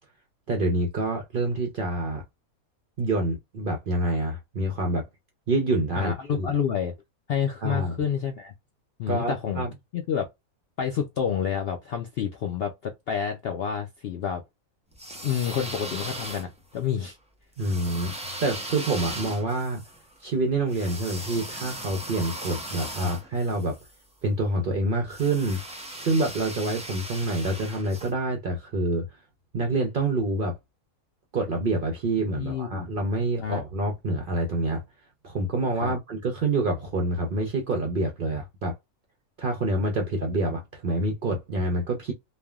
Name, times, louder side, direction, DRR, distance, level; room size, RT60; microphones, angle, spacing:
voice 1, 0.5-2.2 3.0-5.0 5.5-6.5 7.6-8.0 9.1-9.7 17.6-18.1 18.4-19.8 20.2-23.8 24.2-25.6 25.9-29.2 29.5-30.5 31.3-34.8 35.2-38.7 39.4-42.1, right 2 dB, 60° right, 0.5 m, -27 dB
voice 2, 6.0-6.9 7.3-8.5 9.0-9.6 9.9-10.3 10.8-14.4 15.2-17.2 23.0-23.1 32.4-32.9 33.4-33.6 35.8-35.9, left 8 dB, 70° left, 0.5 m, -29 dB
sound 1, 14.9-16.8 17.6-23.9 25.1-28.1, right 1 dB, 10° right, 0.3 m, -38 dB
3.3 x 2.1 x 2.3 m
omnidirectional pair, 1.5 m